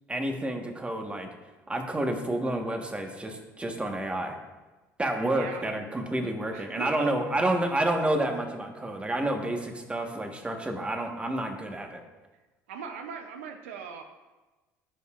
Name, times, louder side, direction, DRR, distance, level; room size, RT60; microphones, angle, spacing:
voice 1, 0.1-1.3 1.7-4.4 5.0-12.0, right 1 dB, 15° right, 3 dB, 1.4 m, -29 dB
voice 2, 5.3-5.7 6.5-7.2 12.7-14.0, right 6 dB, 90° right, 6 dB, 0.7 m, -39 dB
14.5 x 5.4 x 2.5 m, 1.2 s
hypercardioid pair, 75°, 7 cm